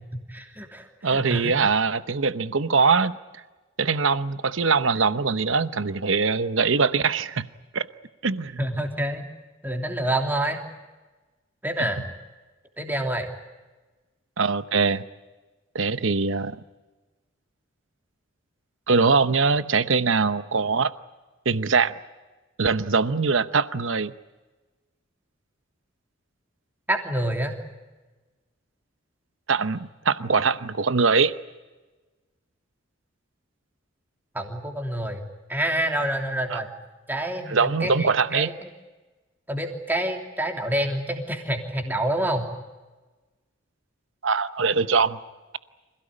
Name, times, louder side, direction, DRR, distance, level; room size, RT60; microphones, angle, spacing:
voice 1, 0.1-1.5 8.6-9.3 9.6-10.6 11.6-12.1 12.8-13.3 26.9-27.5 34.3-35.2 35.5-36.7 37.1-38.7 39.5-42.4, right 1 dB, 10° right, 3 dB, 3.0 m, -27 dB
voice 2, 1.0-3.1 3.8-7.5 7.7-7.9 8.2-8.6 14.4-15.0 15.7-16.6 18.9-20.9 21.4-21.9 22.6-24.1 29.5-29.8 30.0-31.3 36.5-36.6 37.5-38.5 44.2-45.2, right 4 dB, 70° right, 13 dB, 0.9 m, -22 dB
27.0 x 17.0 x 9.8 m, 1.2 s
head